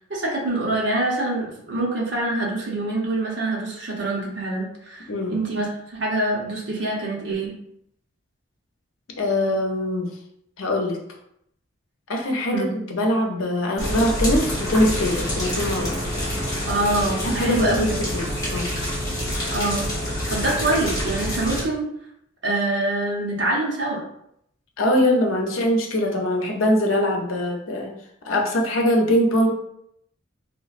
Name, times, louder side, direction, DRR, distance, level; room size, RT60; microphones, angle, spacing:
voice 1, 0.1-7.6 12.5-12.8 16.7-18.0 19.5-19.9 20.3-21.9 22.4-24.0, right 2 dB, 60° right, -3 dB, 0.9 m, -25 dB
voice 2, 9.2-10.1 10.6-11.0 12.1-15.9 17.2-18.7 24.8-27.9 28.2-29.5, left 1 dB, 90° left, 1 dB, 0.7 m, -22 dB
sound 1, 13.8-21.6, equal, 15° left, 1.0 m, -27 dB
3.2 x 3.0 x 2.5 m, 0.74 s
head